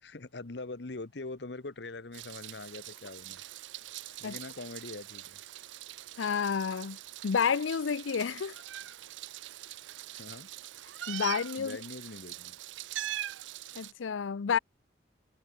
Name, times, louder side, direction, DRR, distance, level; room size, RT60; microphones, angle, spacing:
voice 1, 0.0-3.4 4.2-5.4 10.2-10.5 11.6-12.6, left 3 dB, 65° left, 1.0 m, -43 dB
Meow, 2.1-13.9, right 13 dB, 80° right, 0.5 m, -43 dB
voice 2, 6.2-7.0 7.2-8.6 11.1-11.8 13.8-14.6, left 6 dB, 90° left, 0.5 m, -30 dB
head